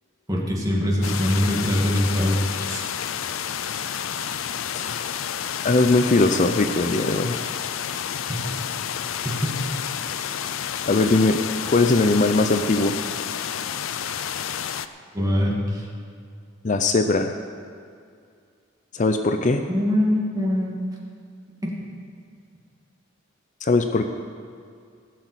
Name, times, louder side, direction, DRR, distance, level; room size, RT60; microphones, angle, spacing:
voice 1, 0.3-2.8 8.3-8.5 9.2-9.5 15.1-15.9 19.7-20.7 21.6-21.7, left 1 dB, 20° right, -3 dB, 2.3 m, -23 dB
sound 1, 1.0-14.9, left 8 dB, 85° left, 0.5 m, -30 dB
voice 2, 4.7-5.1 5.6-7.4 10.9-11.4 11.7-12.9 16.6-17.3 18.9-19.6 23.6-24.0, left 2 dB, 40° left, 6 dB, 0.6 m, -20 dB
16.0 x 6.1 x 8.2 m, 2.3 s
head